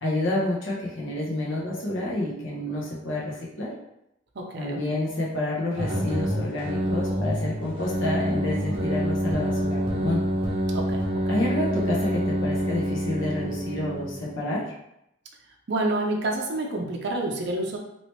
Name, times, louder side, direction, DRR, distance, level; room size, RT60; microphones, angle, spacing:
voice 1, 0.0-3.7 4.6-10.2 11.3-14.7, left 1 dB, 65° left, -5 dB, 1.0 m, -29 dB
voice 2, 4.4-4.8 10.7-11.4 15.7-17.8, right 2 dB, 55° right, 1 dB, 0.5 m, -28 dB
sound 1, 5.7-14.3, equal, 25° right, 0.8 m, -27 dB
3.0 x 2.9 x 3.2 m, 0.82 s
head